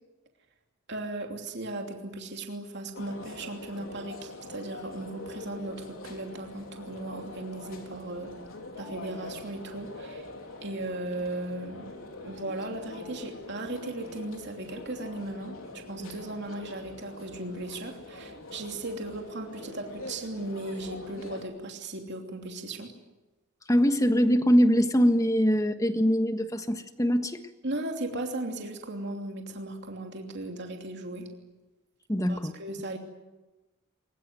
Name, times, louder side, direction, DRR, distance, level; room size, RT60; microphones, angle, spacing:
voice 1, 0.9-8.3 8.8-10.2 10.6-11.9 12.2-15.6 15.9-22.9 27.6-31.3 32.3-33.0, right 2 dB, 55° right, 2 dB, 2.9 m, -37 dB
sound 1, 2.9-21.4, left 2 dB, 80° left, 4.0 m, -44 dB
voice 2, 23.7-27.4 32.1-32.5, equal, 15° left, 8 dB, 1.5 m, -23 dB
22.5 x 21.0 x 9.3 m, 1.1 s
head